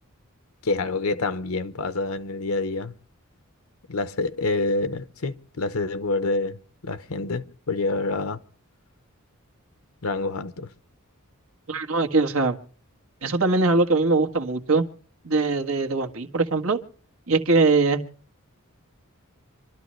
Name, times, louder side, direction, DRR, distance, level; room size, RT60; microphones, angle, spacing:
voice 1, 0.6-2.9 3.9-6.6 6.8-8.4 10.0-10.7, left 3 dB, 75° left, 1.0 m, -27 dB
voice 2, 11.7-12.6 13.2-14.8 15.2-16.8 17.3-18.0, right 3 dB, 70° right, 1.6 m, -21 dB
26.0 x 12.5 x 3.2 m
head